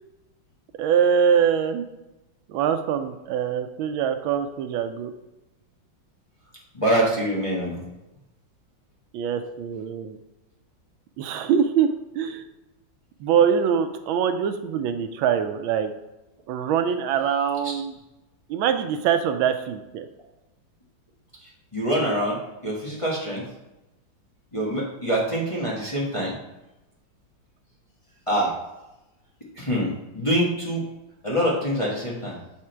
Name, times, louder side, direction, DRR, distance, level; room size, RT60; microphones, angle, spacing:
voice 1, 0.8-1.9 2.5-5.1 9.1-10.2 11.2-11.9 12.1-12.4 13.2-15.9 16.5-17.9 18.5-20.1, right 8 dB, 85° right, 8 dB, 1.4 m, -23 dB
voice 2, 6.7-7.7 21.7-22.4 22.6-23.4 24.5-26.3 28.3-28.5 29.5-30.8 31.2-32.3, equal, 20° left, -6 dB, 1.2 m, -25 dB
7.3 x 3.6 x 4.4 m, 0.98 s
omnidirectional pair, 2.1 m